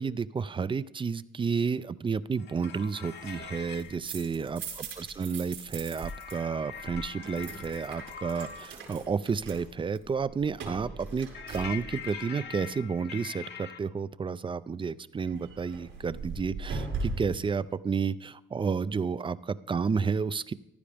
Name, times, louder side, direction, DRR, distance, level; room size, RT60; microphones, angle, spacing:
voice 1, 0.0-20.5, right 5 dB, 25° right, 17 dB, 0.5 m, -31 dB
sound 1, 2.4-4.0 5.9-8.7 11.3-13.8, left 7 dB, 60° left, 1.2 m, -43 dB
sound 2, 3.7-6.4 6.6-12.2 15.3-17.5, right 3 dB, 75° right, 4.9 m, -40 dB
15.0 x 11.5 x 3.5 m, 0.88 s
cardioid pair, 90°, 20 cm